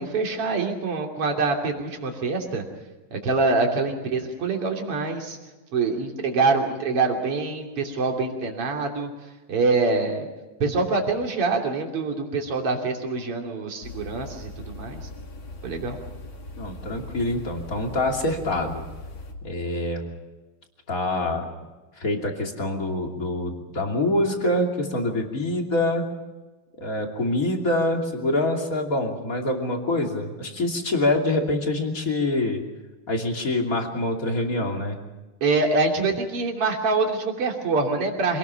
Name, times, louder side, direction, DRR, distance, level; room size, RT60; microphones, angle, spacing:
voice 1, 0.0-2.6 3.1-5.4 5.7-9.1 9.5-10.3 10.6-15.0 15.6-16.0 35.4-38.4, right 3 dB, 40° right, 1 dB, 3.6 m, -25 dB
sound 1, 13.8-19.3, left 2 dB, 40° left, 2.5 m, -40 dB
voice 2, 16.6-18.8 19.4-20.1 20.9-21.5 22.0-26.0 26.8-32.6 33.1-35.0, left 1 dB, 25° left, 2 dB, 2.8 m, -25 dB
26.5 x 19.5 x 5.8 m, 1.2 s
omnidirectional pair, 4.0 m